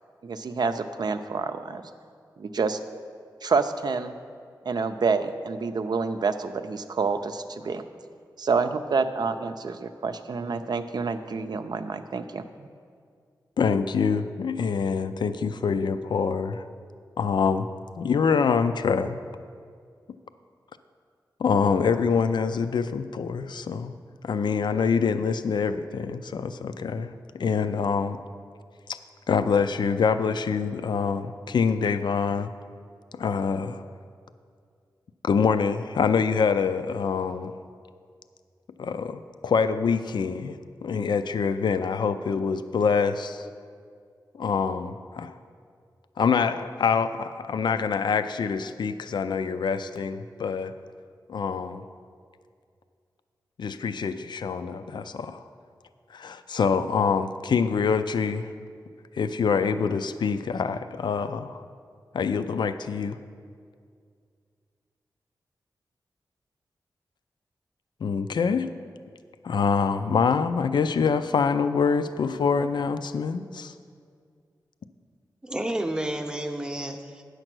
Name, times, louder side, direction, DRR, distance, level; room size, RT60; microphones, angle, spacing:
voice 1, 0.2-1.8 2.4-2.8 3.4-4.1 4.7-7.8 8.4-12.7, right 4 dB, 60° right, 8 dB, 0.5 m, -28 dB
voice 2, 13.6-16.6 17.2-17.7 18.0-19.2 21.4-23.9 24.2-28.2 28.9-29.0 29.3-32.5 33.1-33.8 35.2-37.5 38.8-43.5 44.3-45.3 46.2-50.7 51.3-51.8 53.6-55.4 56.1-58.5 59.2-61.6 62.1-63.2 68.0-68.7 69.4-73.7, left 5 dB, 70° left, 11 dB, 0.4 m, -25 dB
voice 3, 75.4-77.2, right 1 dB, 10° right, 4 dB, 0.7 m, -30 dB
8.9 x 6.5 x 6.1 m, 2.2 s
wide cardioid pair, 90°, 8 cm